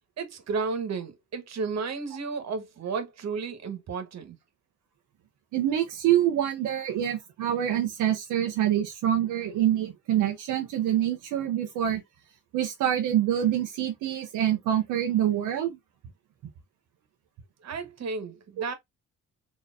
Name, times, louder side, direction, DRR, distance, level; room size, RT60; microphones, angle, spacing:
voice 1, 0.2-4.4 17.6-18.7, right 4 dB, 60° right, 1.4 m, -33 dB
voice 2, 5.5-12.0 12.5-15.8 18.6-18.7, right 11 dB, 90° right, 0.8 m, -26 dB
4.1 x 3.0 x 2.6 m
cardioid pair, 90°, 30 cm